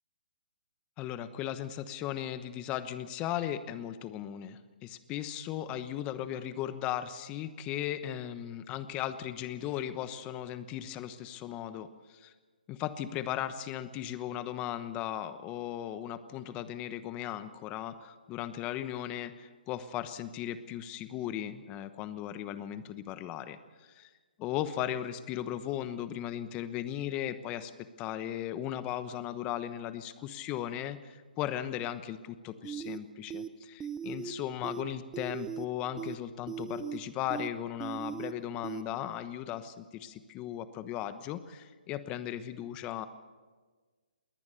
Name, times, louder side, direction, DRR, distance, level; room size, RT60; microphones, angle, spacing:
voice 1, 1.0-12.3 12.7-24.1 24.4-27.7 28.0-43.1, left 11 dB, 20° left, 12 dB, 1.1 m, -37 dB
sound 1, 32.6-33.0 33.3-33.5 33.8-34.3 34.6-34.8 35.1-35.7 36.0-36.2 36.5-37.0 37.3-37.5 37.8-38.3 38.6-38.8, right 7 dB, 10° right, 0.6 m, -38 dB
21.5 x 18.0 x 6.9 m, 1.4 s
hypercardioid pair, 150°, 5 cm